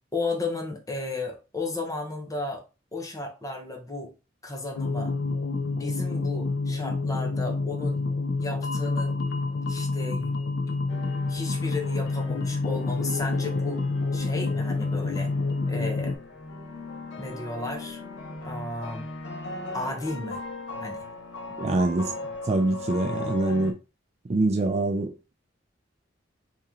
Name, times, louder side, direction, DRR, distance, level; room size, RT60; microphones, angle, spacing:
voice 1, 0.1-2.7 2.9-4.1 4.4-5.1 5.8-8.0 8.4-9.2 9.7-10.3 10.7-10.8 11.3-13.8 14.1-15.3 15.7-16.2 17.2-18.0 18.4-19.1 19.7-20.4 20.8-21.0, left 2 dB, 20° left, 0.9 m, -33 dB
sound 1, 4.8-16.1, left 3 dB, 50° left, 0.4 m, -28 dB
sound 2, 10.9-23.7, left 2 dB, 65° left, 0.8 m, -39 dB
voice 2, 21.6-22.2 22.4-23.8 24.2-25.3, right 2 dB, 35° right, 0.4 m, -25 dB
3.0 x 2.8 x 3.7 m
head